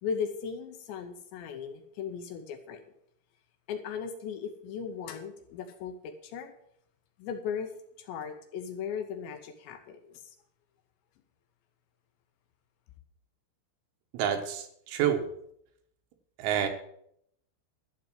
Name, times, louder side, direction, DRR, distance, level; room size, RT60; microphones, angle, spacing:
voice 1, 0.0-2.8 3.7-6.5 7.2-7.7 8.0-10.4, left 7 dB, 80° left, 7 dB, 2.7 m, -37 dB
voice 2, 14.1-15.2 16.4-16.7, right 9 dB, 90° right, 4 dB, 4.2 m, -28 dB
12.0 x 7.3 x 7.5 m, 0.73 s
omnidirectional pair, 6.0 m